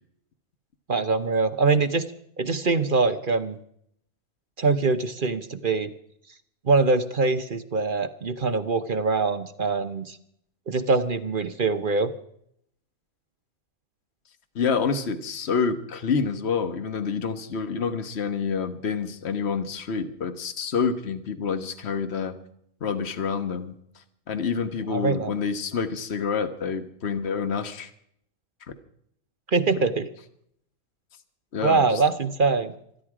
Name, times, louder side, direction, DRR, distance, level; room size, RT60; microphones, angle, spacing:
voice 1, 0.9-2.0 2.4-3.6 4.6-5.9 6.6-10.2 10.7-12.1 24.9-25.3 29.5-30.1 31.6-32.7, right 4 dB, 40° right, 10 dB, 1.0 m, -23 dB
voice 2, 14.5-22.3 22.8-27.9 31.5-32.0, left 5 dB, 50° left, 9 dB, 1.5 m, -28 dB
26.0 x 10.5 x 4.9 m, 0.69 s
omnidirectional pair, 1.5 m